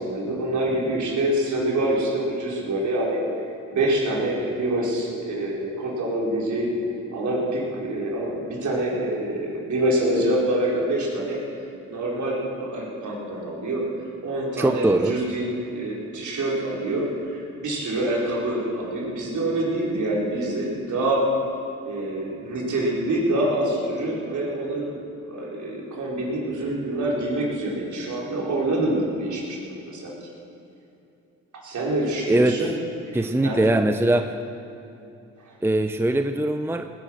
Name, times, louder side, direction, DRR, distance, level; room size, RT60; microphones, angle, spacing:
voice 1, 0.0-3.2 3.7-6.7 7.1-11.4 11.9-13.8 14.2-21.3 21.8-24.9 25.2-30.3 31.5-32.8 33.0-33.7, right 1 dB, 60° right, -3 dB, 4.6 m, -26 dB
voice 2, 14.6-15.1 32.3-32.6 33.1-34.4 35.6-36.9, right 1 dB, 5° right, 8 dB, 0.7 m, -21 dB
19.5 x 10.5 x 6.5 m, 2.7 s
supercardioid pair, 65°, 33 cm